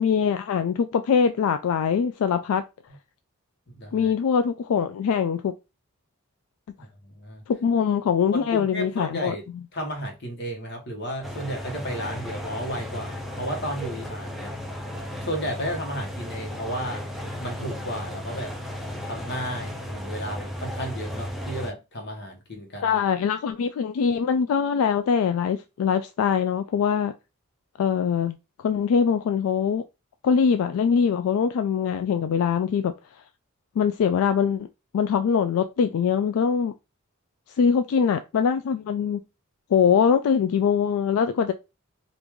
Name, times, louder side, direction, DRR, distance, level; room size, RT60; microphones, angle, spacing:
voice 1, 0.0-2.6 3.9-5.5 7.5-9.3 22.8-27.1 27.8-28.4 28.6-29.8 30.2-32.9 33.8-34.7 34.9-36.7 37.6-39.2 39.7-41.5, left 7 dB, 75° left, 0.3 m, -23 dB
voice 2, 3.7-4.1 6.8-7.4 8.3-9.4 9.7-14.5 15.2-17.1 17.4-18.5 19.0-23.0, equal, 50° left, 1.1 m, -33 dB
sound 1, 11.2-21.7, equal, ahead, 0.4 m, -35 dB
3.0 x 2.5 x 3.5 m
head